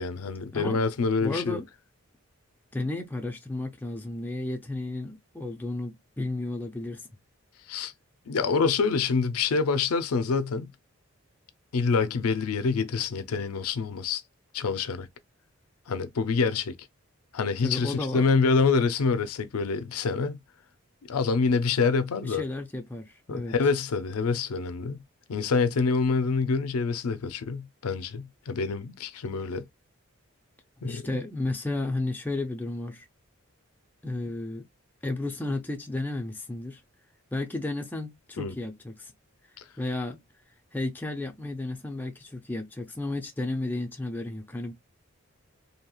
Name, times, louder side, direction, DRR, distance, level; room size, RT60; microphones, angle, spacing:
voice 1, 0.0-1.6 7.7-7.9 8.3-10.7 11.7-14.2 14.5-15.1 15.9-16.7 17.3-20.4 21.1-22.4 23.3-25.0 25.3-29.6 30.8-31.0 38.4-38.5, left 4 dB, 85° left, 0.5 m, -26 dB
voice 2, 0.5-0.8 1.2-1.7 2.7-7.1 17.6-18.3 22.2-23.6 30.8-33.1 34.0-34.7 35.0-36.8 37.3-39.1 39.8-40.2 40.7-44.7, left 2 dB, 10° left, 0.5 m, -33 dB
3.0 x 2.8 x 2.3 m
head